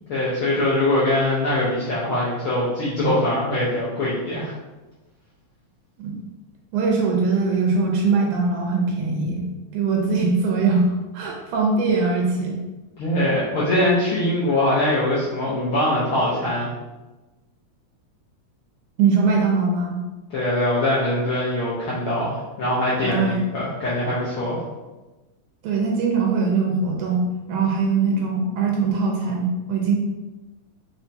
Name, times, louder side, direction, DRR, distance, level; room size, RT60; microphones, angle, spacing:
voice 1, 0.1-4.5 13.0-16.7 20.3-24.6, left 1 dB, 75° left, -8 dB, 1.2 m, -22 dB
voice 2, 6.7-12.6 19.0-20.0 23.0-23.4 25.6-30.0, right 4 dB, 85° right, -1 dB, 2.1 m, -21 dB
4.5 x 4.2 x 2.7 m, 1.1 s
omnidirectional pair, 3.5 m